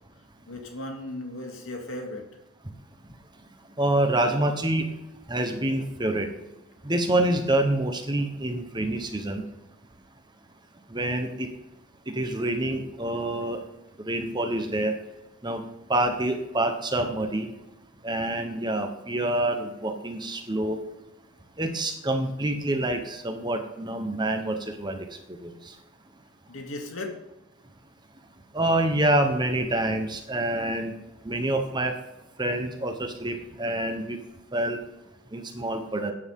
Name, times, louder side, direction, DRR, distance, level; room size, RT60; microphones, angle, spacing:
voice 1, 0.5-2.3 26.5-27.2, left 1 dB, 65° left, 2 dB, 2.8 m, -36 dB
voice 2, 3.8-4.9 5.3-6.3 6.8-9.4 10.9-11.5 12.1-13.6 14.0-14.9 15.4-15.6 15.9-17.5 18.0-20.8 21.6-25.5 28.5-30.9 31.2-31.9 32.4-34.2 34.5-34.8 35.3-36.1, right 1 dB, 20° right, 5 dB, 1.2 m, -27 dB
15.0 x 9.9 x 3.8 m, 0.96 s
head